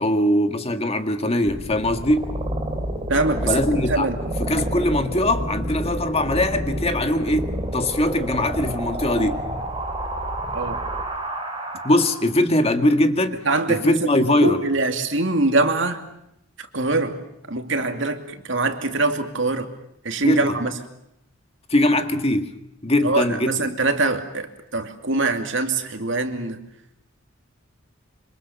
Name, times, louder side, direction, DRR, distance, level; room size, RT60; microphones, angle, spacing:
voice 1, 0.0-2.3 3.5-4.1 4.4-9.4 11.8-13.4 13.7-14.6 20.2-20.6 21.7-22.5 22.8-23.7, left 1 dB, 30° left, 7 dB, 1.9 m, -21 dB
FX sound grgoyl, 1.4-12.4, right 1 dB, 25° right, 3.1 m, -29 dB
voice 2, 3.1-4.2 10.5-10.8 13.4-16.0 16.6-17.2 17.5-19.7 20.0-20.7 23.0-26.6, right 2 dB, 65° right, 6 dB, 2.6 m, -23 dB
26.5 x 26.0 x 7.1 m, 0.79 s
head